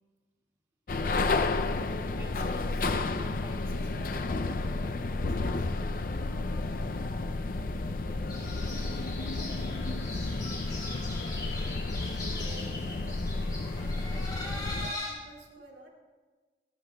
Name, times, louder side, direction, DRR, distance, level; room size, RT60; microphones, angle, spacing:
sound 1, 0.9-14.9, left 3 dB, 50° left, 0.5 m, -31 dB
voice 1, 2.0-5.9 8.0-11.2, right 1 dB, 15° right, -3 dB, 1.9 m, -52 dB
sound 2, 8.3-15.1, left 2 dB, 25° left, 3.2 m, -41 dB
voice 2, 12.1-15.9, right 1 dB, 75° right, -1 dB, 2.5 m, -52 dB
25.0 x 13.0 x 2.3 m, 1.3 s
head